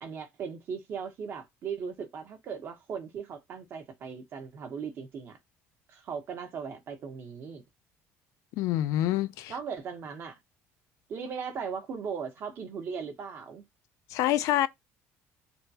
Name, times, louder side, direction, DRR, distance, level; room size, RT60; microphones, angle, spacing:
voice 1, 0.0-5.4 5.9-7.6 9.5-10.4 11.1-13.6, right 6 dB, 45° right, 1.0 m, -38 dB
voice 2, 8.6-9.5 14.1-14.7, left 13 dB, 75° left, 0.3 m, -26 dB
3.6 x 2.2 x 2.7 m
cardioid pair, 145°, 6 cm